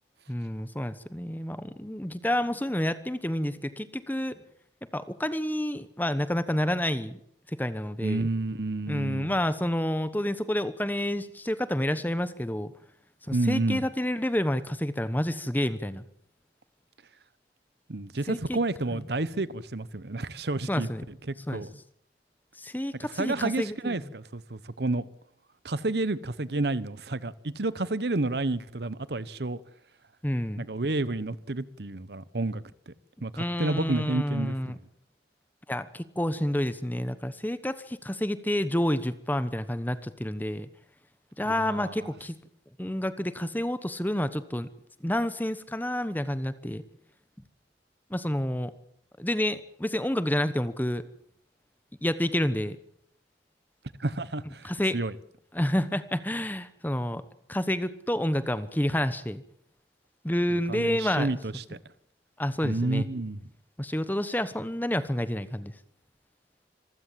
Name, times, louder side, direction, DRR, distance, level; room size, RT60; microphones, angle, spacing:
voice 1, 0.3-4.4 4.9-7.2 7.5-8.2 8.9-12.7 13.3-16.0 18.3-18.6 20.7-21.1 21.5-21.6 22.6-24.0 30.2-30.7 33.3-34.7 35.7-40.7 41.4-42.4 42.8-44.7 45.0-46.8 48.1-48.7 49.2-51.1 52.0-52.8 54.6-55.0 55.5-57.2 57.5-59.4 60.2-61.3 62.4-63.1 63.8-65.7, left 1 dB, 10° left, 1.1 m, -29 dB
voice 2, 8.0-9.4 13.3-13.8 17.9-20.9 21.3-21.7 23.2-25.1 25.6-29.6 30.6-32.9 33.2-34.8 41.4-42.1 54.0-55.1 60.5-61.8 62.6-63.4, right 2 dB, 65° right, 1.0 m, -30 dB
26.0 x 15.5 x 7.5 m
head